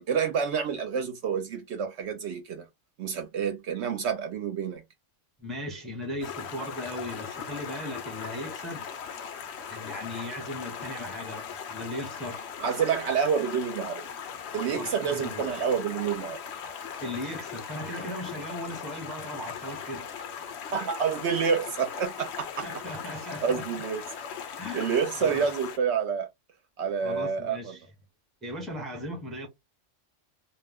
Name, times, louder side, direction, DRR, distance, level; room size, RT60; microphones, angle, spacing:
voice 1, 0.0-2.7 3.0-4.8 12.6-14.1 14.5-16.4 20.7-22.6 23.4-24.0 24.7-26.3 26.8-27.7, right 6 dB, 65° right, 0.8 m, -28 dB
voice 2, 5.4-8.9 9.7-12.4 14.8-15.7 17.0-20.1 22.6-23.6 24.6-25.4 27.0-27.8 28.4-29.5, left 1 dB, ahead, 0.7 m, -37 dB
Stream, 6.2-25.8, left 7 dB, 65° left, 0.8 m, -39 dB
2.3 x 2.1 x 3.4 m
omnidirectional pair, 1.3 m